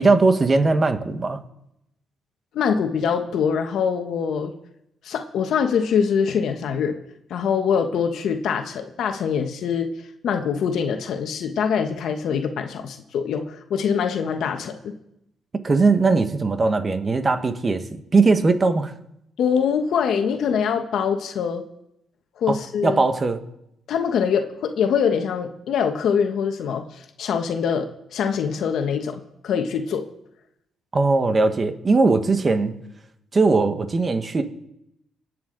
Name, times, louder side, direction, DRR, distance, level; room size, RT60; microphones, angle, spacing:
voice 1, 0.0-1.4 15.6-18.9 22.5-23.4 30.9-32.7 33.3-34.4, right 3 dB, 30° right, 8 dB, 1.5 m, -19 dB
voice 2, 2.5-4.5 5.0-7.0 7.3-9.9 10.2-14.9 19.4-21.6 22.4-23.0 23.9-30.1, left 7 dB, 70° left, 5 dB, 1.2 m, -24 dB
26.5 x 9.4 x 4.0 m, 0.83 s
cardioid pair, 90°, 0 cm